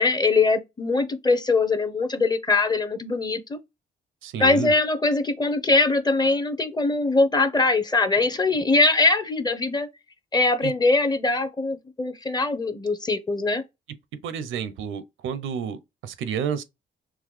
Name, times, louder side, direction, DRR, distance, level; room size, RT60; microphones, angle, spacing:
voice 1, 0.0-3.6 4.4-9.9 10.3-13.6, left 3 dB, 20° left, 0.6 m, -22 dB
voice 2, 4.2-4.7 10.6-10.7 14.2-16.6, right 7 dB, 80° right, 0.6 m, -30 dB
3.8 x 2.9 x 3.2 m
cardioid pair, 90°, 20 cm